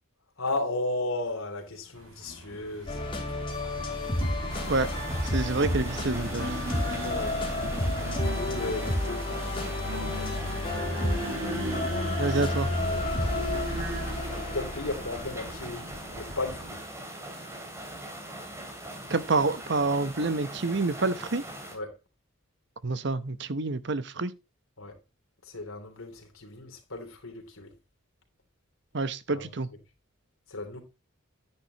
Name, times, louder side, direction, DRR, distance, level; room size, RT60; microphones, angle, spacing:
voice 1, 0.4-3.0 6.8-7.4 8.3-10.7 11.0-11.1 12.8-13.8 14.5-16.8 21.7-21.9 24.8-25.0 25.4-27.7 29.3-29.5 30.5-30.8, left 2 dB, 80° left, 3.3 m, -35 dB
sound 1, 1.9-16.8, right 1 dB, 85° right, 2.3 m, -39 dB
sound 2, 2.9-16.0, left 1 dB, 25° left, 2.8 m, -31 dB
sound 3, 4.5-21.8, right 1 dB, 15° right, 2.8 m, -41 dB
voice 2, 5.2-6.6 12.2-12.7 19.1-21.4 22.8-24.4 28.9-29.7, right 3 dB, 55° right, 0.9 m, -28 dB
10.0 x 10.0 x 3.0 m
head